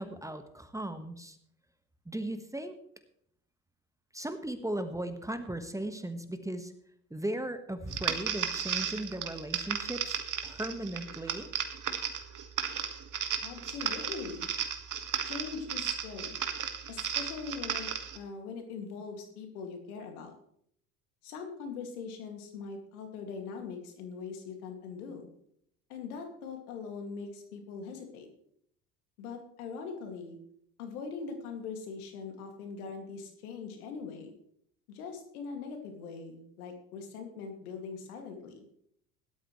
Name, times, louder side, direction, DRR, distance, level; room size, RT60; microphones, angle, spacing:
voice 1, 0.0-1.4 2.0-2.7 4.1-6.7 7.1-11.5, right 1 dB, 5° right, 8 dB, 1.4 m, -37 dB
sound 1, 7.9-18.2, right 8 dB, 45° right, 1.8 m, -35 dB
voice 2, 13.4-14.5 15.2-16.4 16.9-17.9 18.1-20.3 21.2-25.3 25.9-28.3 29.2-30.4 30.8-34.3 34.9-38.6, left 5 dB, 80° left, 4 dB, 2.4 m, -41 dB
17.0 x 12.0 x 3.2 m, 0.70 s
hypercardioid pair, 65°, 44 cm